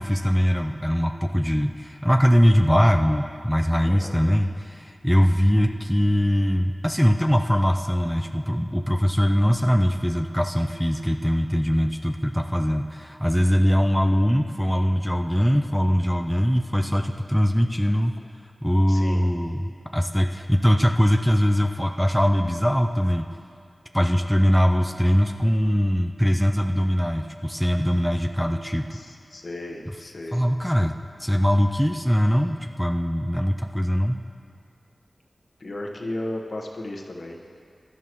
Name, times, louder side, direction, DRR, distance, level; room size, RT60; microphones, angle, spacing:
voice 1, 0.0-18.2 18.6-23.3 23.9-28.9 30.3-34.2, equal, ahead, 4 dB, 0.5 m, -21 dB
voice 2, 3.8-4.2 16.9-17.0 18.9-19.2 28.9-30.4 35.6-37.4, left 1 dB, 65° left, 0 dB, 1.2 m, -35 dB
16.5 x 11.5 x 3.1 m, 2.3 s
wide cardioid pair, 60°, 0 cm